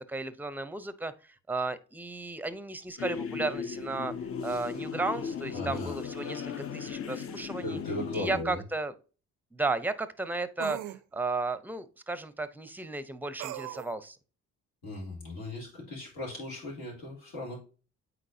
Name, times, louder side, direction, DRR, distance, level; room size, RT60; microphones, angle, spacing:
voice 1, 0.0-4.1 4.4-7.8 8.1-8.9 9.5-14.2, right 3 dB, 5° right, 14 dB, 0.6 m, -34 dB
sound 1, 3.0-8.4, left 6 dB, 50° left, 0.6 m, -37 dB
voice 2, 5.5-5.9 7.6-8.6 14.8-17.6, left 1 dB, 90° left, -4 dB, 3.5 m, -37 dB
sound 2, 8.3-8.4 10.6-11.0 13.4-13.9, right 14 dB, 80° right, 0.5 m, -38 dB
8.3 x 4.3 x 2.7 m, 0.36 s
cardioid pair, 90°, 30 cm